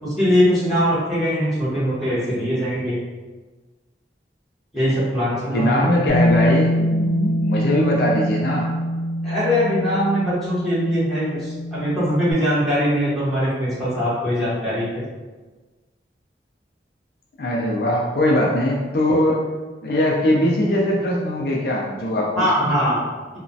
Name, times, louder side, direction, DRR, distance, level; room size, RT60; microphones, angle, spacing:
voice 1, 0.0-3.0 4.7-5.9 9.2-15.0 22.3-23.4, equal, ahead, -11 dB, 1.0 m, -21 dB
voice 2, 5.5-8.7 17.4-19.5 19.8-22.8, left 1 dB, 60° left, -2 dB, 0.4 m, -21 dB
Bass guitar, 6.1-12.3, equal, 20° left, 1.0 m, -24 dB
3.0 x 2.1 x 2.6 m, 1.3 s
head